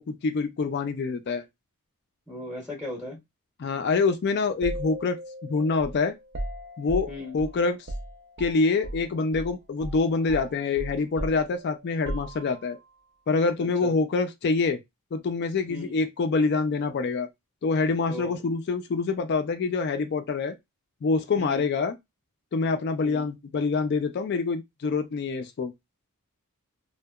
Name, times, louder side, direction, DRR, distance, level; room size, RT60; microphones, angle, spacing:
voice 1, 0.0-1.4 3.6-5.2 5.5-6.1 6.8-7.8 8.4-12.8 13.3-14.8 15.1-17.3 17.6-20.5 21.0-21.9 22.5-25.7, left 4 dB, 50° left, 0.3 m, -26 dB
voice 2, 2.3-3.2 7.1-7.4 13.6-13.9 15.7-16.0 18.1-18.3 21.4-21.6 23.0-23.2, left 2 dB, 5° left, 0.6 m, -37 dB
sound 1, 4.6-9.1 9.3-9.5 9.8-12.8, right 1 dB, 50° right, 0.4 m, -37 dB
2.7 x 2.1 x 2.2 m
head